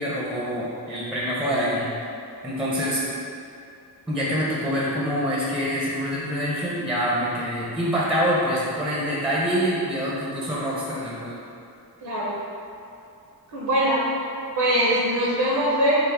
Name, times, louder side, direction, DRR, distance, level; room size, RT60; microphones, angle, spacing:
voice 1, 0.0-1.9 2.4-3.0 4.1-11.4, equal, ahead, -6 dB, 0.4 m, -25 dB
voice 2, 12.0-12.3 13.5-14.0 14.6-16.0, right 1 dB, 85° right, -7 dB, 0.7 m, -22 dB
3.3 x 2.0 x 3.4 m, 2.7 s
wide cardioid pair, 105°, 39 cm